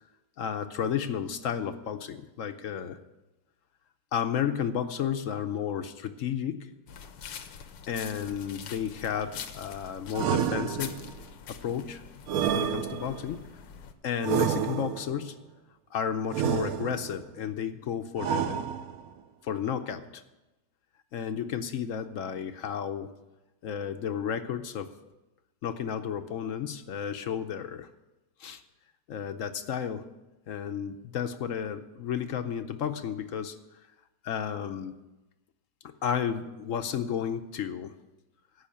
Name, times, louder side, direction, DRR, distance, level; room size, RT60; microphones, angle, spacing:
voice 1, 0.4-3.0 4.1-6.7 7.9-11.1 11.5-12.0 12.5-13.4 14.0-15.4 15.9-18.6 19.4-20.2 21.1-23.1 23.6-24.9 25.6-27.9 28.4-28.6 29.1-30.1 30.5-33.6 34.2-35.0 36.0-37.9, left 8 dB, 65° left, 9 dB, 0.8 m, -32 dB
sound 1, 6.9-13.9, left 7 dB, 85° left, 1.6 m, -44 dB
sound 2, 10.1-11.2 12.3-13.3 14.2-15.2 16.3-17.2 18.2-19.1, right 8 dB, 65° right, 1.1 m, -29 dB
15.0 x 5.7 x 8.6 m, 1.0 s
omnidirectional pair, 1.9 m